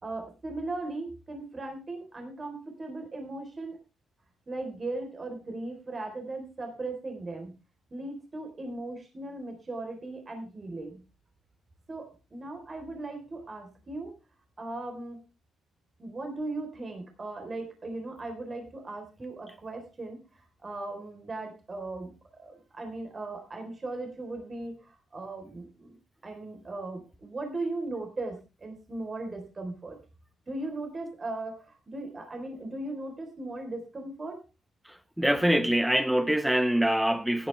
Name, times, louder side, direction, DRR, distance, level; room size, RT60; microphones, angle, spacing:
voice 1, 0.0-3.8 4.5-7.5 7.9-11.0 11.9-14.1 14.6-15.2 16.0-26.0 26.2-30.0 30.5-34.4, right 2 dB, 35° right, 4.0 m, -38 dB
voice 2, 35.2-37.5, right 1 dB, 5° right, 1.5 m, -24 dB
15.0 x 11.5 x 3.4 m
supercardioid pair, 65°, 0 cm